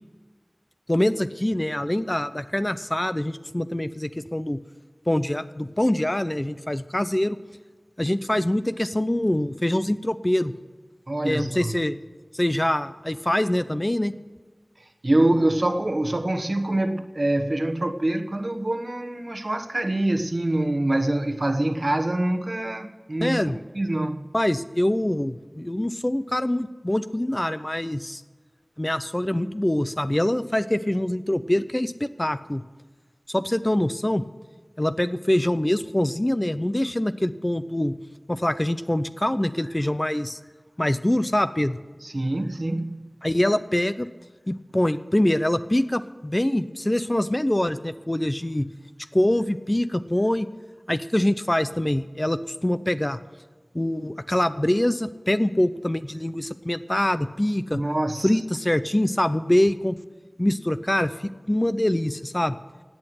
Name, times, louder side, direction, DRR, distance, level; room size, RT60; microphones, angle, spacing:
voice 1, 0.9-4.6 5.1-7.4 8.0-10.5 11.2-12.0 12.3-14.1 23.2-23.6 24.3-28.2 28.8-32.6 33.3-34.2 34.8-37.9 38.3-40.4 40.8-41.8 43.2-44.1 44.5-48.7 49.1-50.5 50.9-53.2 53.7-57.8 58.2-60.0 60.4-62.6, left 1 dB, 30° left, 12 dB, 0.7 m, -24 dB
voice 2, 11.1-11.7 15.0-23.4 23.7-24.3 42.0-43.1 57.7-58.3, right 1 dB, 55° right, 8 dB, 1.1 m, -25 dB
17.5 x 8.7 x 7.9 m, 1.3 s
wide cardioid pair, 45°, 0 cm